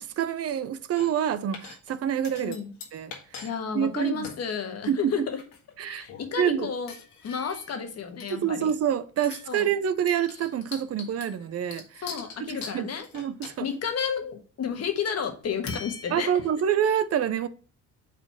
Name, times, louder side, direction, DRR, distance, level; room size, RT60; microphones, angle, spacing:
voice 1, 0.0-2.6 2.9-3.5 3.7-4.3 4.9-5.3 5.8-6.1 6.4-6.7 8.3-12.1 12.4-13.7 16.1-17.5, right 9 dB, 45° right, 0.6 m, -27 dB
sound 1, 1.0-1.3 1.5-1.9 2.2-3.5 3.8-3.9 4.2-4.4 5.1-5.7 6.0-6.3 6.9-7.8 8.2-8.9 9.2-9.6 10.1-14.1 15.7-16.5, left 5 dB, 85° left, 1.6 m, -43 dB
voice 2, 2.4-2.7 3.4-5.4 5.9-6.9 7.2-8.7 9.5-9.7 12.0-13.1 13.6-16.3, left 7 dB, 50° left, 1.4 m, -31 dB
4.6 x 4.0 x 5.8 m
cardioid pair, 105°, 33 cm